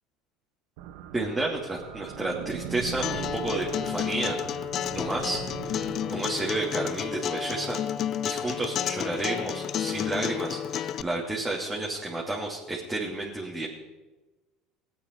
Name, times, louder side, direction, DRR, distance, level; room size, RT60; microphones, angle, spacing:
sound 1, 0.8-12.7, right 11 dB, 70° right, 1.0 m, -43 dB
voice 1, 1.1-4.4 4.9-7.8 8.2-13.7, right 2 dB, 10° right, -4 dB, 2.8 m, -31 dB
Acoustic guitar, 3.0-11.0, left 9 dB, 50° left, 0.5 m, -31 dB
18.0 x 8.9 x 4.7 m, 1.1 s
hypercardioid pair, 75°, 0 cm